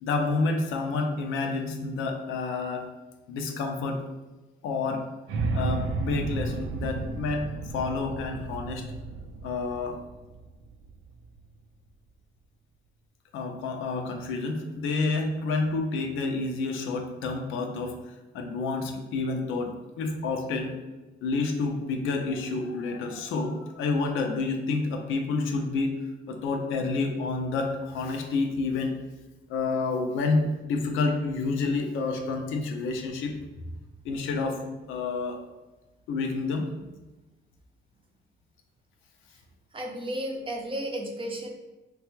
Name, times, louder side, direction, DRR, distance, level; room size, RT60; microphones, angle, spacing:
voice 1, 0.0-2.9 3.3-4.0 4.6-5.0 5.5-7.5 7.7-8.8 9.4-10.0 13.3-18.0 18.3-20.8 21.2-26.0 26.3-28.9 29.5-33.3 34.0-34.6 34.9-35.4 36.1-36.7, left 3 dB, 85° left, 3 dB, 0.5 m, -29 dB
sound 1, 5.3-11.4, right 3 dB, 85° right, 0.4 m, -33 dB
voice 2, 39.7-41.5, right 1 dB, 25° right, 1 dB, 0.6 m, -33 dB
3.2 x 2.3 x 3.0 m, 1.1 s
cardioid pair, 90°, 20 cm